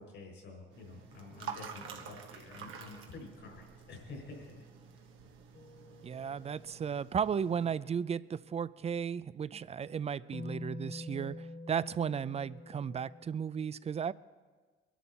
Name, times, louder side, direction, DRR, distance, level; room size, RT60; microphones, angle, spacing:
voice 1, 0.0-4.6 4.9-5.1, left 3 dB, 70° left, 1 dB, 5.2 m, -49 dB
sound 1, 0.7-7.8, right 7 dB, 90° right, 1.5 m, -49 dB
sound 2, 5.5-7.9 10.3-13.2, left 2 dB, 40° left, 0.9 m, -47 dB
voice 2, 6.0-14.1, right 7 dB, 30° right, 18 dB, 0.4 m, -35 dB
22.0 x 11.0 x 4.3 m, 1.4 s
cardioid pair, 90°, 20 cm